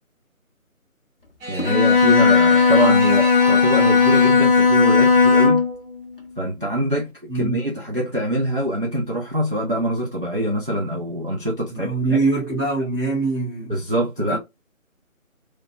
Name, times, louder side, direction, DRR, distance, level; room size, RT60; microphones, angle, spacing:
sound 1, 1.4-4.7, right 1 dB, 60° right, 1.5 m, -33 dB
voice 1, 1.5-5.6 6.4-12.2 13.7-14.4, right 1 dB, 40° right, 0.4 m, -24 dB
Bowed string instrument, 1.6-5.8, left 5 dB, 45° left, 0.5 m, -15 dB
voice 2, 11.7-13.8 14.3-14.4, right 3 dB, 15° right, 0.8 m, -23 dB
3.1 x 2.0 x 2.4 m
figure-of-eight pair, 155°, 42 cm